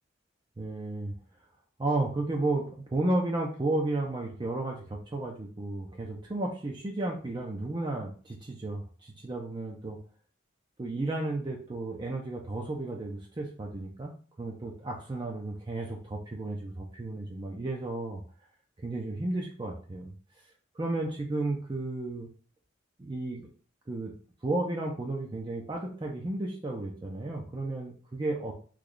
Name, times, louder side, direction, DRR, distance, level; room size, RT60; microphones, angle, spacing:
voice 1, 0.6-1.1 1.8-10.0 10.8-14.1 14.4-18.2 18.8-20.1 20.7-22.3 23.0-23.5 23.9-24.1 24.4-28.5, right 2 dB, 25° right, 0 dB, 0.4 m, -33 dB
3.1 x 2.3 x 3.7 m, 0.41 s
head